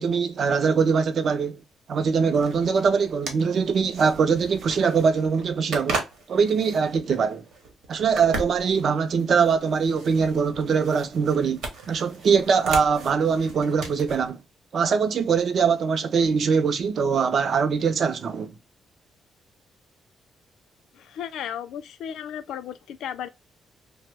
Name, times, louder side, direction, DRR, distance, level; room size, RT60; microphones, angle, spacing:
voice 1, 0.0-1.6 1.9-6.0 6.3-7.4 7.9-14.4 14.7-18.5, right 6 dB, 45° right, 0.4 m, -22 dB
sound 1, 2.3-14.3, right 3 dB, 85° right, 1.0 m, -37 dB
voice 2, 20.9-23.3, left 9 dB, 85° left, 0.3 m, -34 dB
3.0 x 2.0 x 3.2 m
cardioid pair, 175°, 0 cm